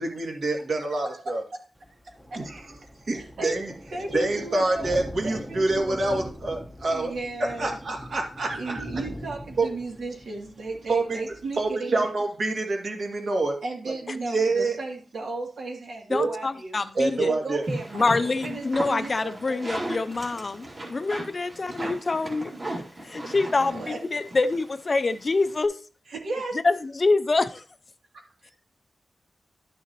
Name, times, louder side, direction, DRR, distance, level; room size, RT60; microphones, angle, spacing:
voice 1, 0.0-1.4 2.4-2.6 3.1-3.7 4.1-7.1 7.4-8.8 9.6-9.7 10.9-11.2 11.6-13.6 13.9-14.8 16.1-16.3 16.9-17.6, right 2 dB, 55° right, 2 dB, 2.3 m, -26 dB
Thunder, 1.8-11.7, equal, ahead, 0.8 m, -42 dB
voice 2, 3.1-3.6 3.9-4.9 5.2-6.1 6.9-7.8 8.5-12.1 13.6-16.8 17.3-19.7 21.8-21.9 23.7-24.0 26.1-26.6 28.1-28.6, right 3 dB, 70° right, 1 dB, 2.6 m, -35 dB
voice 3, 16.1-17.3 17.9-22.5 23.0-25.8 26.6-27.6, left 3 dB, 35° left, 11 dB, 0.5 m, -25 dB
sound 1, 17.6-25.6, right 1 dB, 35° right, 2.5 m, -37 dB
12.0 x 6.6 x 2.9 m, 0.40 s
wide cardioid pair, 155°, 0 cm